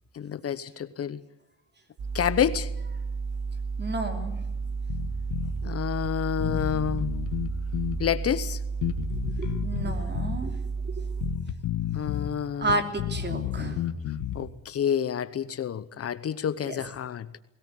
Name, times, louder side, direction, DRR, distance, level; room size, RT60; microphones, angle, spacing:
voice 1, 0.1-1.2 2.1-2.7 5.6-7.1 8.0-8.6 11.9-12.8 14.3-17.4, left 9 dB, 50° left, 0.9 m, -29 dB
sound 1, 2.0-11.4, right 4 dB, 60° right, 2.9 m, -32 dB
voice 2, 3.8-4.3 9.4-10.5 12.6-13.8 16.6-16.8, right 2 dB, 35° right, 3.2 m, -31 dB
Bass guitar, 4.9-5.6 6.0-6.1 6.4-8.0 8.8-10.4 11.2-12.3 12.6-14.5, left 10 dB, 85° left, 1.3 m, -31 dB
21.5 x 18.0 x 9.6 m
cardioid pair, 90°, 30 cm